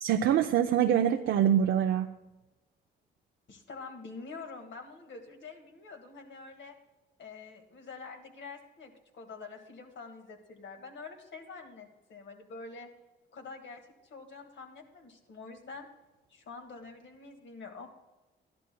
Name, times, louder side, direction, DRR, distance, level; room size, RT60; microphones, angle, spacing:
voice 1, 0.0-2.1, right 9 dB, 65° right, 5 dB, 0.6 m, -25 dB
voice 2, 3.5-6.8 7.2-12.9 13.3-15.9 16.3-17.9, left 4 dB, 60° left, 4 dB, 1.9 m, -46 dB
14.5 x 11.5 x 2.3 m, 1.0 s
supercardioid pair, 65°, 21 cm